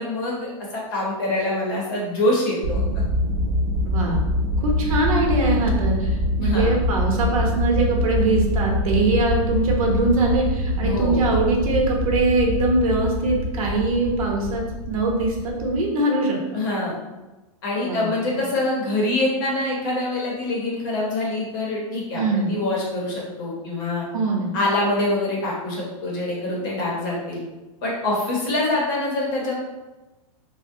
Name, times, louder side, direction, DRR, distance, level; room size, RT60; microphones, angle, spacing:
voice 1, 0.0-3.0 6.4-6.8 10.8-11.3 16.5-16.9 17.6-24.0 24.5-27.4 27.8-29.5, left 2 dB, 35° left, -3 dB, 0.7 m, -25 dB
sound 1, 2.6-15.8, left 1 dB, 55° right, 0.4 m, -24 dB
voice 2, 3.8-4.3 4.6-16.4 17.8-18.1 22.1-22.5 24.1-24.6, right 2 dB, 75° right, 0 dB, 0.8 m, -22 dB
3.3 x 2.1 x 2.6 m, 1.1 s
supercardioid pair, 180°, 18 cm